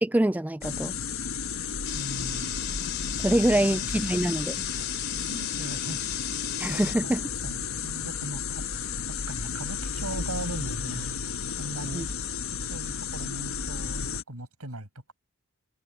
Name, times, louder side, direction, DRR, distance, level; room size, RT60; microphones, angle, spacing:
voice 1, 0.0-0.9 3.2-4.7 6.6-7.2 11.9-12.0, right 1 dB, 5° right, 0.3 m, -25 dB
sound 1, 0.6-14.2, left 6 dB, 70° left, 1.3 m, -33 dB
sound 2, 1.9-6.9, left 11 dB, 50° left, 3.2 m, -37 dB
voice 2, 1.9-2.6 3.4-4.1 4.8-5.0 5.3-6.0 6.8-7.1 7.4-12.3 12.7-15.1, right 1 dB, 85° right, 6.8 m, -40 dB
head